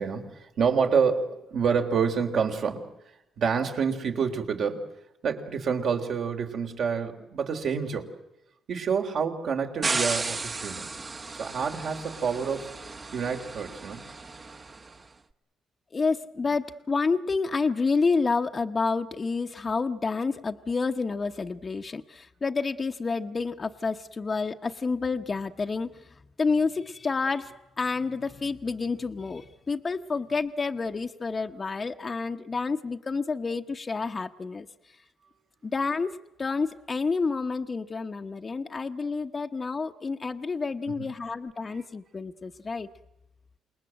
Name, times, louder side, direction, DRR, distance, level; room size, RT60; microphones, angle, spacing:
voice 1, 0.0-2.9 3.4-4.9 5.2-8.1 8.7-10.9 11.4-12.7 13.1-14.0 41.0-41.1, right 6 dB, 65° right, 3 dB, 3.5 m, -28 dB
sound 1, 9.8-15.0, right 3 dB, 30° right, 1.2 m, -34 dB
voice 2, 15.9-34.7 35.6-42.9, left 4 dB, 35° left, 5 dB, 1.0 m, -29 dB
28.0 x 20.5 x 7.7 m, 0.90 s
cardioid pair, 90°, 0 cm